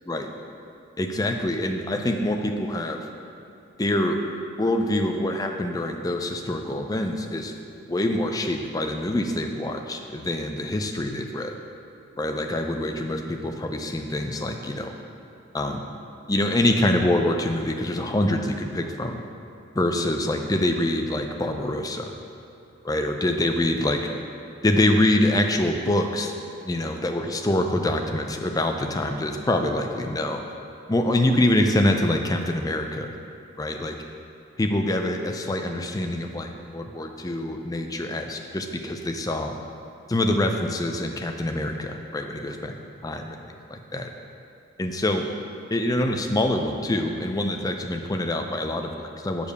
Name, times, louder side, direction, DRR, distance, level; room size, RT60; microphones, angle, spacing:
voice 1, 1.0-3.1 3.8-4.2 4.6-7.5 7.9-11.6 12.1-14.9 15.5-15.9 16.3-19.2 19.7-22.1 22.8-24.0 24.6-26.3 26.6-30.4 30.9-33.1 33.6-34.0 34.6-39.5 40.1-42.8 43.0-44.1 44.8-45.3 45.7-49.5, left 1 dB, 15° left, 4 dB, 0.4 m, -25 dB
6.7 x 5.1 x 6.6 m, 2.7 s
head